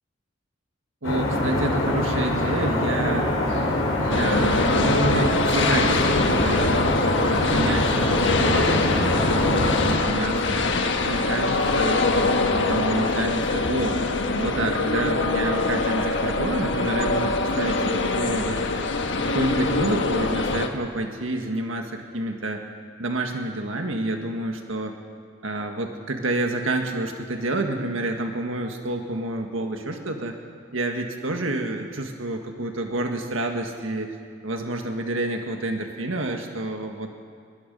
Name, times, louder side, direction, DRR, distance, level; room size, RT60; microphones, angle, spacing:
sound 1, 1.0-10.0, left 1 dB, 85° left, 4.6 m, -24 dB
voice 1, 1.0-3.3 4.0-10.6 11.1-14.0 14.3-18.6 19.2-22.6 23.0-25.0 25.4-30.3 30.7-34.2 34.4-37.1, right 2 dB, 80° right, 3 dB, 1.7 m, -28 dB
sound 2, 4.1-20.7, left 3 dB, 65° left, 1.5 m, -24 dB
22.5 x 22.0 x 5.4 m, 2.2 s
head